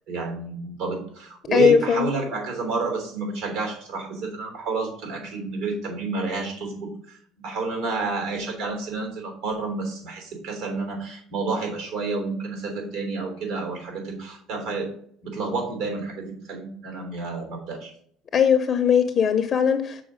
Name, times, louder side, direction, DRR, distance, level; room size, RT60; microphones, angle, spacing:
voice 1, 0.1-14.9 15.2-17.9, right 3 dB, 75° right, 3.1 m, -30 dB
voice 2, 1.5-2.1 18.3-20.0, left 7 dB, 35° left, 0.6 m, -19 dB
6.2 x 4.6 x 5.0 m
cardioid pair, 130°, 0 cm